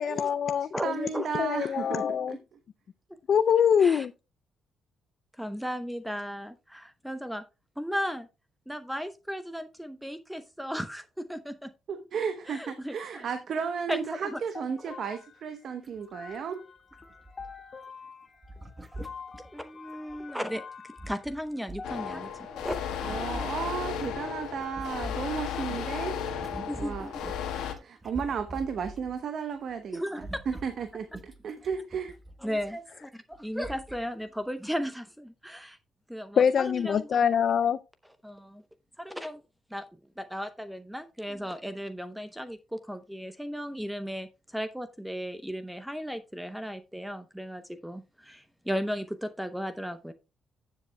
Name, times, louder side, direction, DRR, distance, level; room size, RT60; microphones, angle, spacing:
voice 1, 0.0-1.1 1.3-2.4 3.3-4.1 36.4-37.8, left 7 dB, 55° left, 0.4 m, -24 dB
voice 2, 0.8-2.4 11.9-16.7 23.0-27.1 27.6-32.1, right 6 dB, 60° right, 0.9 m, -34 dB
voice 3, 5.4-7.4 7.8-8.3 8.7-11.7 12.5-13.2 13.9-14.3 19.5-20.6 21.1-22.8 23.2-23.5 26.7-27.1 29.9-30.3 32.4-35.8 36.1-37.3 38.2-38.6 39.0-39.4 39.7-39.9 40.2-50.1, equal, ahead, 0.7 m, -35 dB
sound 1, 14.5-25.8, left 5 dB, 35° left, 1.7 m, -47 dB
sound 2, 15.8-16.0 16.3-16.4 16.9-17.8 18.4-20.2 20.7-24.1 24.4-29.2 29.5-29.7 30.0-32.7 33.3-33.4 33.6-34.1 34.5-34.6, right 1 dB, 20° right, 1.1 m, -45 dB
sound 3, 21.8-27.7, left 8 dB, 85° left, 1.4 m, -34 dB
14.0 x 7.5 x 2.2 m
cardioid pair, 90°, 0 cm